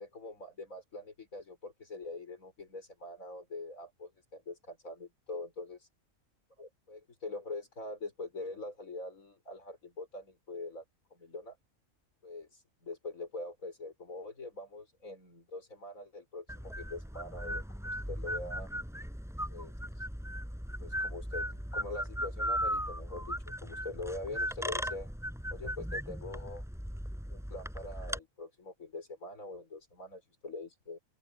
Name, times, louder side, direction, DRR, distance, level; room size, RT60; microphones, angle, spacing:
voice 1, 0.0-5.9 6.6-10.8 11.1-11.6 12.2-17.6 18.1-18.7 19.5-19.7 20.8-25.1 25.5-26.6 27.3-31.0, left 2 dB, 80° left, 5.6 m, -43 dB
sound 1, 16.5-28.2, equal, ahead, 6.1 m, -37 dB
open air
omnidirectional pair, 1.4 m